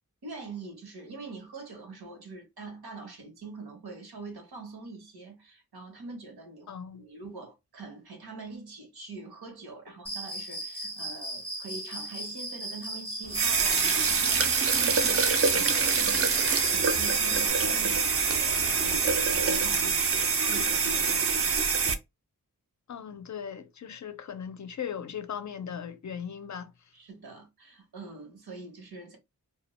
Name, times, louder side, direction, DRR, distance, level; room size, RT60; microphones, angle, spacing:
voice 1, 0.2-22.0 26.9-29.2, right 3 dB, 90° right, 1.0 m, -44 dB
voice 2, 6.7-7.0 13.4-14.0 22.9-26.7, left 8 dB, 50° left, 0.4 m, -38 dB
Cricket, 10.1-17.5, right 1 dB, 15° left, 0.7 m, -37 dB
sound 1, 13.3-22.0, right 5 dB, 40° right, 0.4 m, -25 dB
2.2 x 2.1 x 2.9 m
wide cardioid pair, 70°, 37 cm